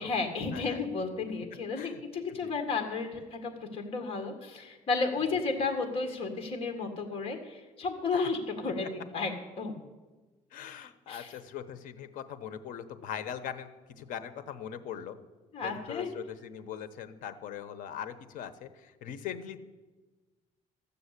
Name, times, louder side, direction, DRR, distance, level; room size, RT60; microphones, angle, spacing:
voice 1, 0.0-8.9 9.1-9.7 11.1-11.3 15.5-16.1, left 4 dB, 45° left, 5 dB, 1.9 m, -33 dB
voice 2, 0.5-0.8 1.7-2.0 2.3-2.5 8.1-8.3 10.5-13.7 14.0-15.2 15.6-19.6, left 9 dB, 85° left, 11 dB, 0.9 m, -41 dB
13.5 x 6.9 x 8.3 m, 1.2 s
cardioid pair, 150°, 13 cm